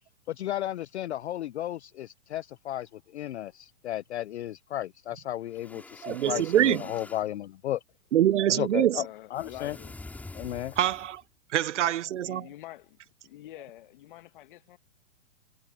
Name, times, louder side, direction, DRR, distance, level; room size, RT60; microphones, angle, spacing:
voice 1, 0.3-7.8 8.5-9.1 9.3-9.8 10.3-10.8, left 13 dB, 55° left, 0.4 m, -34 dB
sound 1, 5.5-7.3 9.3-11.2, left 2 dB, 5° left, 5.2 m, -46 dB
voice 2, 6.0-6.9 8.1-9.0 10.8-11.2 11.5-12.5, right 12 dB, 60° right, 0.7 m, -25 dB
voice 3, 8.9-9.9 12.2-13.0 13.2-14.8, left 15 dB, 35° left, 1.7 m, -46 dB
hypercardioid pair, 165°, 41 cm